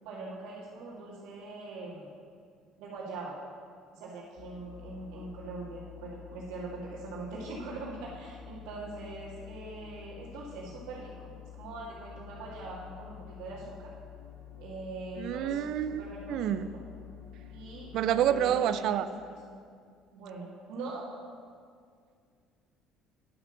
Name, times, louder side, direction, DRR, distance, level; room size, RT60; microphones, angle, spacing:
voice 1, 0.0-2.1 2.8-3.4 3.9-11.3 11.5-13.8 14.6-15.6 15.9-16.4 17.5-19.3 20.1-21.0, right 3 dB, 70° right, -7 dB, 1.9 m, -42 dB
sound 1, 4.4-18.6, left 10 dB, 50° left, 1.7 m, -49 dB
voice 2, 15.2-16.0 16.3-16.7 17.9-19.1, right 10 dB, 50° right, 11 dB, 0.4 m, -28 dB
9.9 x 8.6 x 6.4 m, 2.2 s
cardioid pair, 170°, 0 cm